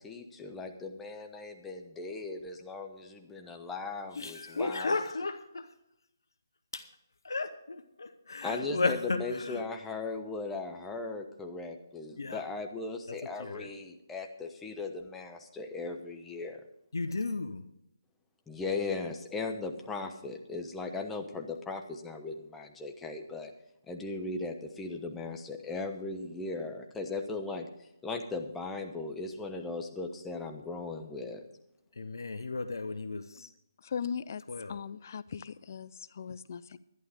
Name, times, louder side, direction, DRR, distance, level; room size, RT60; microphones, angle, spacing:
voice 1, 0.0-4.9 8.4-16.6 18.5-23.5 23.9-31.4, left 3 dB, 5° left, 0.9 m, -38 dB
voice 2, 4.1-5.7 6.7-6.9 7.2-9.6 12.2-12.4 13.2-13.7 16.9-17.6 31.9-33.5 34.5-34.8, left 3 dB, 70° left, 0.9 m, -34 dB
voice 3, 33.8-34.4 34.7-36.8, left 7 dB, 45° left, 0.5 m, -38 dB
11.0 x 11.0 x 5.1 m
figure-of-eight pair, 150°, 2 cm